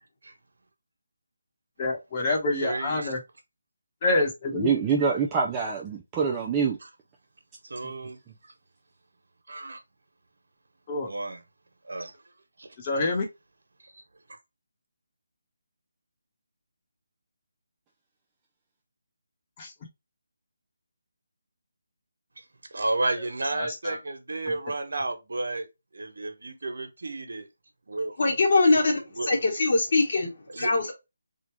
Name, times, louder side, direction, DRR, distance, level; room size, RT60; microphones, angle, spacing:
voice 1, 1.8-3.2 4.0-4.7 10.9-11.1 12.8-13.3 19.6-19.7 23.1-24.0 24.4-24.6, left 2 dB, 30° left, 1.1 m, -28 dB
voice 2, 2.6-3.1 7.7-8.2 9.5-9.8 11.1-11.4 11.9-12.1 22.7-25.6 25.9-27.4 27.9-28.2 29.2-29.3 30.5-30.7, right 2 dB, 75° right, 1.2 m, -31 dB
voice 3, 4.5-6.8 7.8-7.9, right 6 dB, 15° right, 0.5 m, -25 dB
voice 4, 28.2-30.9, left 3 dB, 55° left, 1.4 m, -23 dB
3.7 x 2.4 x 4.4 m
figure-of-eight pair, 165°, 0 cm